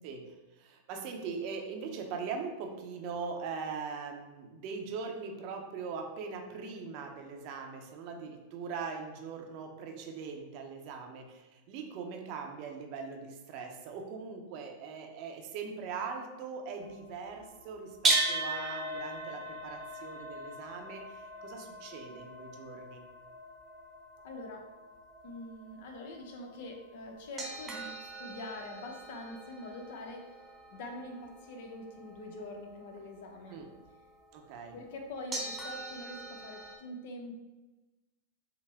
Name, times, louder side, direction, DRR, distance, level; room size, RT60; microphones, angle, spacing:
voice 1, 0.0-23.0 33.5-33.7 34.3-34.8, right 5 dB, 50° right, 3 dB, 0.7 m, -41 dB
sound 1, 16.8-33.0 33.9-34.0 35.3-36.8, right 2 dB, 20° right, 0.8 m, -38 dB
voice 2, 24.2-24.7 25.2-30.3 30.7-33.6 34.7-37.4, left 2 dB, 65° left, 3 dB, 0.8 m, -44 dB
5.7 x 2.1 x 3.5 m, 1.1 s
hypercardioid pair, 120°, 0 cm